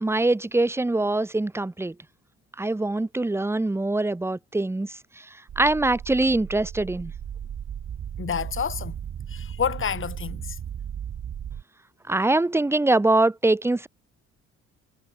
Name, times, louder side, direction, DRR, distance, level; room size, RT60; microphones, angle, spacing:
voice 1, 0.0-1.9 2.6-5.0 5.6-7.1 12.1-13.9, right 2 dB, 10° right, 0.7 m, -23 dB
sound 1, 5.5-11.6, right 9 dB, 55° right, 3.1 m, -36 dB
voice 2, 8.2-8.9 9.3-10.6, left 7 dB, 40° left, 2.4 m, -29 dB
cardioid pair, 90°, 30 cm